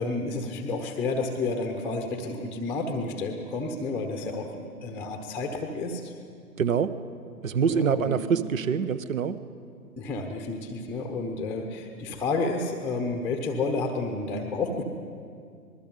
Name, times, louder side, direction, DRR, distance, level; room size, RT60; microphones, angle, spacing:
voice 1, 0.0-6.1 7.7-8.3 10.0-14.8, left 3 dB, 5° left, 3 dB, 0.9 m, -30 dB
voice 2, 6.6-6.9 7.4-9.4, right 7 dB, 60° right, 14 dB, 1.2 m, -25 dB
26.0 x 20.5 x 5.4 m, 2.3 s
figure-of-eight pair, 125°, 46 cm